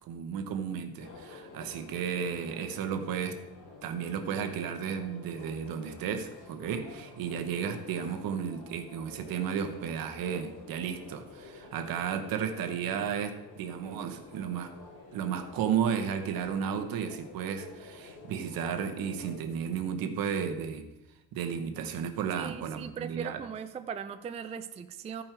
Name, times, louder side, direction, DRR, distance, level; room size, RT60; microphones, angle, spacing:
voice 1, 0.0-3.4 3.8-14.7 15.1-20.9 21.3-23.4, right 7 dB, 70° right, 7 dB, 1.2 m, -33 dB
sound 1, 1.0-19.4, left 3 dB, 60° left, 3.0 m, -50 dB
voice 2, 22.4-25.2, right 7 dB, 20° right, 8 dB, 0.3 m, -39 dB
14.0 x 5.4 x 4.5 m, 1.0 s
cardioid pair, 155°, 36 cm